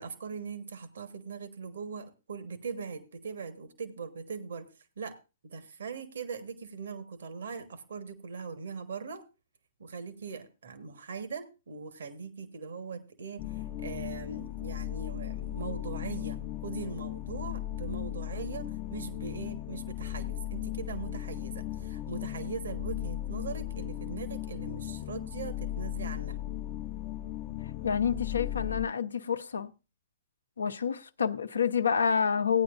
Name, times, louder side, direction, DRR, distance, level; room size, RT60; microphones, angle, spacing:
voice 1, 0.0-4.7 5.0-5.2 5.4-9.2 9.8-26.4, right 5 dB, 70° right, 1.3 m, -40 dB
sound 1, 13.4-28.9, left 13 dB, 40° left, 0.6 m, -37 dB
voice 2, 27.8-29.7 30.6-32.6, left 7 dB, 80° left, 0.7 m, -28 dB
17.0 x 9.4 x 2.5 m
figure-of-eight pair, 115°, 0 cm